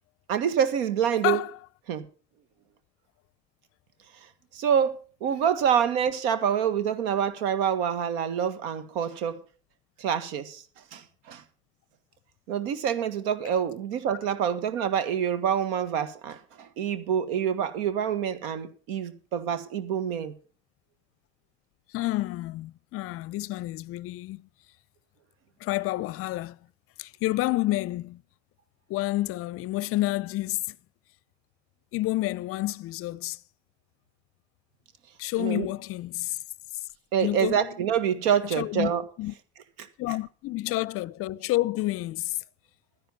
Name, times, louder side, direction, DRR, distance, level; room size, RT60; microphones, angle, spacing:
voice 1, 0.3-1.4 1.9-2.1 4.5-9.4 10.0-10.6 10.9-11.4 12.5-20.3 35.4-35.7 37.1-39.0 39.8-39.9, right 8 dB, 70° right, 1.6 m, -26 dB
voice 2, 21.9-24.4 25.6-26.6 27.0-28.2 28.9-30.8 31.9-33.4 35.2-36.4 37.2-37.7 38.6-38.9 39.2-39.3 40.0-42.4, left 17 dB, 45° left, 0.6 m, -29 dB
12.5 x 10.5 x 5.5 m
hypercardioid pair, 80°, 31 cm